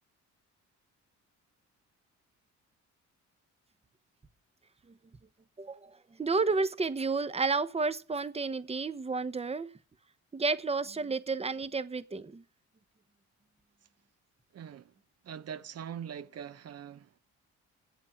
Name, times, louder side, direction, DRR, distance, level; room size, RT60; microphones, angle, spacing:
voice 1, 5.6-9.7 10.3-12.4, right 4 dB, 20° right, 1.0 m, -31 dB
voice 2, 14.5-14.9 15.2-17.2, right 8 dB, 55° right, 1.0 m, -42 dB
9.1 x 8.2 x 8.5 m
cardioid pair, 90°, 30 cm